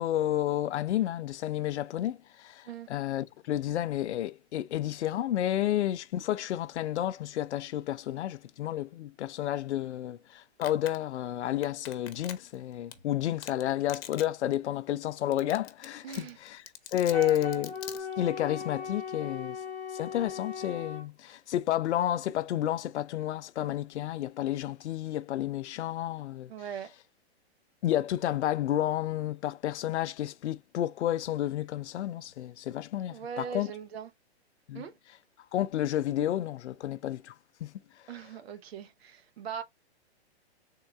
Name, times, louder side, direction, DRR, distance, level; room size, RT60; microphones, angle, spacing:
voice 1, 0.0-16.6 16.9-17.8 18.2-19.6 19.9-26.5 27.8-33.7 34.7-34.8 35.5-37.3 37.6-37.7, left 12 dB, 85° left, 0.5 m, -31 dB
Domestic sounds home sounds, 10.6-11.0 11.6-12.5 12.9-13.0 13.4-13.6 13.9-14.2 14.5-14.6 15.0-15.1 15.3-15.8 16.1-18.0, left 10 dB, 60° left, 0.9 m, -41 dB
voice 2, 16.0-16.4 26.5-26.9 33.1-34.1 34.7-34.9 38.1-39.6, right 7 dB, 65° right, 0.8 m, -40 dB
Wind instrument woodwind instrument, 17.1-21.0, left 4 dB, 5° left, 0.5 m, -38 dB
3.7 x 2.3 x 4.2 m
hypercardioid pair, 155°, 33 cm